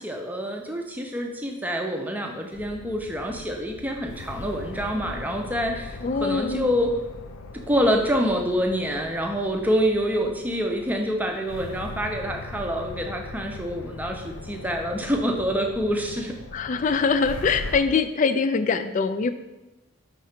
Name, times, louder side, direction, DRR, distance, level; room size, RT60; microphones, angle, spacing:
voice 1, 0.0-7.0 7.7-16.3 16.8-16.9, equal, 10° right, 2 dB, 0.6 m, -26 dB
sound 1, 2.5-17.8, left 2 dB, 80° left, 0.5 m, -40 dB
voice 2, 6.0-6.8 16.5-19.3, left 5 dB, 35° left, 11 dB, 0.3 m, -23 dB
5.4 x 3.7 x 5.8 m, 1.0 s
head